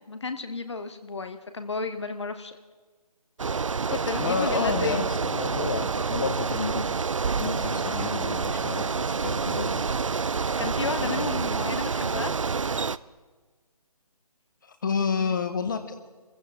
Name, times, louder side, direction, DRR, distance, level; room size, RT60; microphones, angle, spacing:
voice 1, 0.0-2.6 3.5-5.0 10.6-12.3 14.9-15.3, left 4 dB, 50° left, 9 dB, 1.0 m, -33 dB
Bicycle, 3.4-13.0, right 5 dB, 55° right, 0.4 m, -28 dB
voice 2, 4.1-6.8 7.4-9.8 11.0-11.4 14.6-16.1, left 5 dB, 30° left, 8 dB, 1.2 m, -30 dB
25.0 x 15.0 x 3.5 m, 1.4 s
figure-of-eight pair, 150°, 19 cm